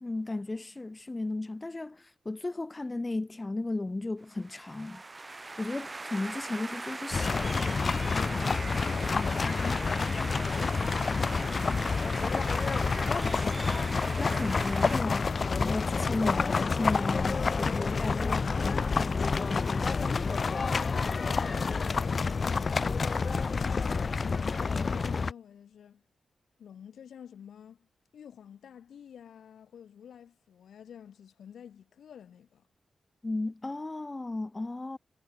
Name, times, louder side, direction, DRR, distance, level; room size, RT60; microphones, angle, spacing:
voice 1, 0.0-5.0 5.6-7.8 14.2-20.4 33.2-35.0, left 2 dB, 30° left, 1.2 m, -35 dB
sound 1, 4.3-15.0, right 3 dB, 35° right, 0.8 m, -40 dB
sound 2, 7.1-25.3, left 4 dB, 55° left, 0.5 m, -28 dB
voice 2, 21.2-23.2 23.5-26.0 26.6-32.7, left 8 dB, 80° left, 1.3 m, -50 dB
supercardioid pair, 45°, 0 cm